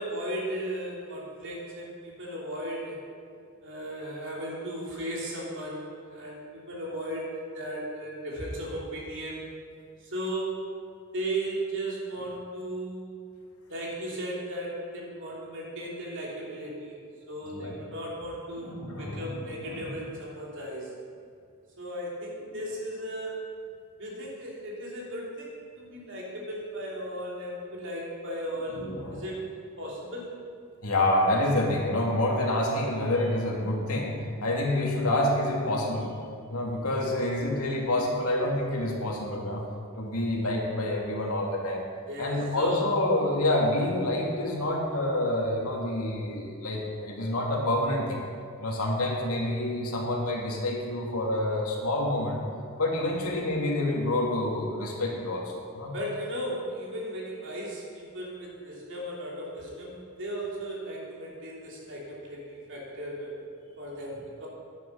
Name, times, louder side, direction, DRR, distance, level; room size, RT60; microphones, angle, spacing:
voice 1, 0.0-3.1 3.6-9.5 10.0-10.6 11.1-13.1 13.7-16.9 17.3-20.9 21.8-23.4 24.0-29.5 29.8-30.4 42.1-42.9 53.2-53.4 55.9-63.3 63.8-64.5, right 1 dB, 60° right, -4 dB, 3.0 m, -36 dB
voice 2, 18.6-19.9 28.7-29.2 30.8-34.2 34.4-36.1 36.5-39.6 40.0-41.8 42.2-48.2 48.6-52.4 52.8-55.9, left 1 dB, 85° left, -1 dB, 2.3 m, -28 dB
10.5 x 9.4 x 5.7 m, 2.3 s
head